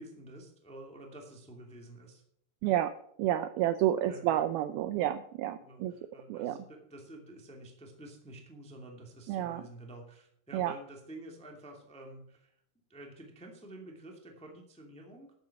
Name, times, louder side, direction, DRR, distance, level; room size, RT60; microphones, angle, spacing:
voice 1, 0.0-2.2 4.0-4.3 5.6-12.6 12.9-15.3, right 1 dB, 5° left, 1 dB, 1.0 m, -49 dB
voice 2, 2.6-2.9 3.2-5.9 6.3-6.6 9.3-9.6 10.5-10.7, right 12 dB, 90° right, 11 dB, 2.1 m, -30 dB
13.5 x 8.0 x 5.9 m, 0.69 s
omnidirectional pair, 5.0 m